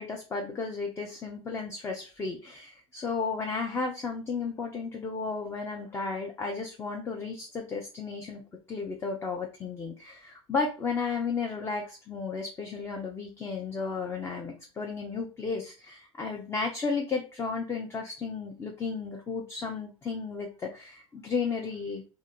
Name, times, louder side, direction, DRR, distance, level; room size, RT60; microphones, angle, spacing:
voice 1, 0.0-8.4 8.7-22.1, left 4 dB, 15° left, 1 dB, 0.5 m, -33 dB
2.6 x 2.4 x 4.1 m, 0.33 s
figure-of-eight pair, 85°, 17 cm